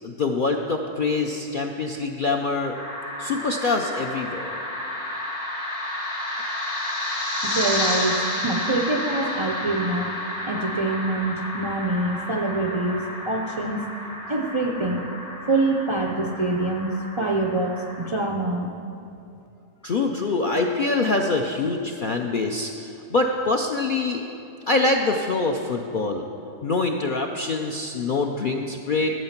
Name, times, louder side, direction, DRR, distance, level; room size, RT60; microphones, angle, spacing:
voice 1, 0.0-2.7 3.2-4.6 19.8-24.2 24.7-26.3 26.6-29.1, left 3 dB, 60° left, 2 dB, 0.5 m, -24 dB
sound 1, 2.7-18.1, left 1 dB, 80° left, 2.8 m, -31 dB
voice 2, 7.4-10.1 10.4-13.8 14.3-15.0 15.5-18.7, right 2 dB, 50° right, 1 dB, 0.3 m, -25 dB
12.5 x 8.0 x 5.8 m, 2.7 s
omnidirectional pair, 1.5 m